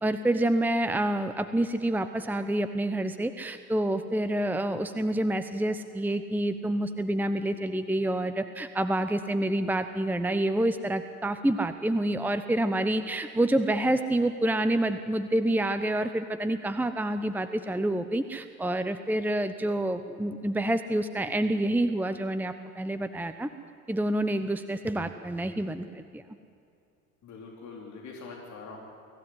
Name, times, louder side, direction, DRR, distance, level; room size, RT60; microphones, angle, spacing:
voice 1, 0.0-23.5 23.9-26.2, right 1 dB, 5° right, 10 dB, 1.0 m, -28 dB
voice 2, 27.2-28.8, left 4 dB, 40° left, -1 dB, 4.0 m, -43 dB
25.0 x 15.5 x 9.7 m, 2.5 s
hypercardioid pair, 70°, 42 cm